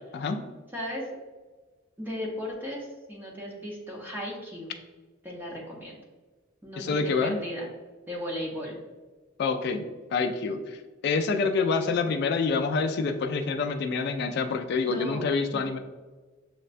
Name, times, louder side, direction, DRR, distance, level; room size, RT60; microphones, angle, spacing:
voice 1, 0.7-1.0 2.0-4.7 5.2-5.9 6.6-7.7 8.1-8.8 14.9-15.3 15.5-15.7, equal, 10° right, -3 dB, 0.7 m, -36 dB
voice 2, 6.8-7.4 9.4-10.8 11.0-15.8, left 4 dB, 55° left, 6 dB, 0.3 m, -27 dB
6.3 x 2.2 x 2.5 m, 1.3 s
head